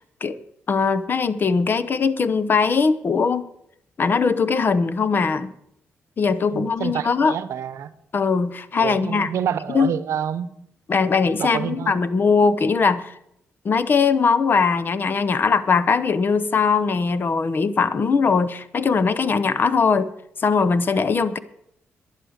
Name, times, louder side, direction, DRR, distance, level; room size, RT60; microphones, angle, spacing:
voice 1, 0.7-3.5 4.0-5.5 6.2-7.4 8.1-9.3 9.7-9.9 10.9-13.1 13.6-20.1 20.4-21.4, left 5 dB, 45° left, 0.8 m, -20 dB
voice 2, 6.5-7.9 8.8-10.5 11.4-11.9, right 9 dB, 80° right, 0.8 m, -28 dB
11.0 x 10.5 x 6.5 m
cardioid pair, 90°, 5 cm